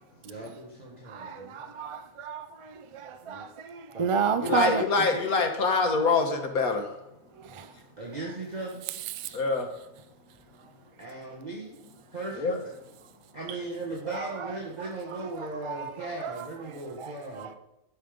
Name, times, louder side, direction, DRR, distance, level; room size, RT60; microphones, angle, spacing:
voice 1, 0.2-1.6 3.2-3.4 3.9-4.6 8.0-8.8 11.0-11.7 12.1-12.7 13.3-17.5, right 2 dB, 30° right, 1.7 m, -38 dB
voice 2, 1.1-4.8 7.4-7.7 9.2-9.4 14.1-14.3 15.4-16.5 17.0-17.2, right 6 dB, 50° right, 0.3 m, -32 dB
voice 3, 4.4-6.9 9.3-9.7 12.4-12.6, left 3 dB, 90° left, 1.7 m, -25 dB
13.0 x 5.5 x 5.2 m
omnidirectional pair, 1.5 m